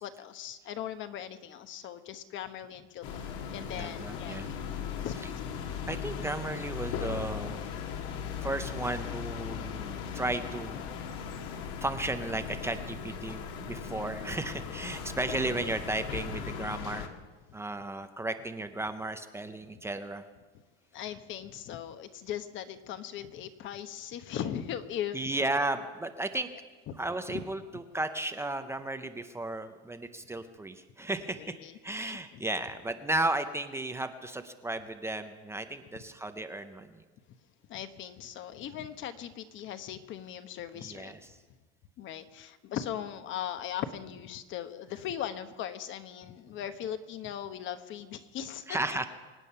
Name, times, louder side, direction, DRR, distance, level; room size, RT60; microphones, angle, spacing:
voice 1, 0.0-3.2 3.5-4.5 5.0-5.4 7.4-7.5 20.9-25.3 26.9-27.0 27.3-27.4 31.4-32.5 37.7-41.1 42.0-48.6, left 10 dB, 35° left, 10 dB, 1.1 m, -39 dB
sound 1, 3.0-17.1, left 7 dB, 55° left, 1.8 m, -38 dB
voice 2, 3.7-4.5 5.0-5.3 5.9-7.6 8.1-10.9 11.8-17.1 17.5-20.2 25.1-26.5 26.9-31.6 31.8-37.0 40.7-41.4 46.6-46.7 48.7-49.1, right 2 dB, 10° right, 8 dB, 0.6 m, -34 dB
25.0 x 9.1 x 5.7 m, 1.3 s
supercardioid pair, 145°, 34 cm